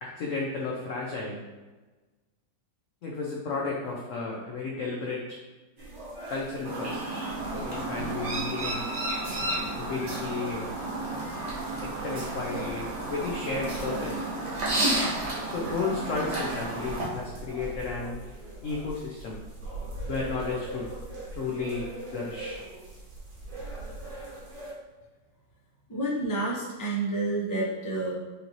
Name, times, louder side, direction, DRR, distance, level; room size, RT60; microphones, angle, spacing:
voice 1, 0.0-1.4 3.0-5.4 6.3-7.2 7.5-8.9 9.8-10.7 11.8-14.3 15.5-18.2 18.6-19.4 20.1-20.9 21.3-22.6, left 4 dB, 80° left, -3 dB, 0.7 m, -33 dB
sound 1, 5.8-24.7, right 2 dB, 85° right, 2.0 m, -41 dB
Chirp tweet, 6.6-17.1, right 2 dB, 45° right, 1.2 m, -32 dB
sound 2, 9.1-15.4, right 1 dB, 70° right, 2.1 m, -49 dB
voice 2, 25.9-28.1, right 2 dB, 20° left, -6 dB, 0.5 m, -29 dB
5.3 x 2.6 x 2.9 m, 1.2 s
omnidirectional pair, 2.0 m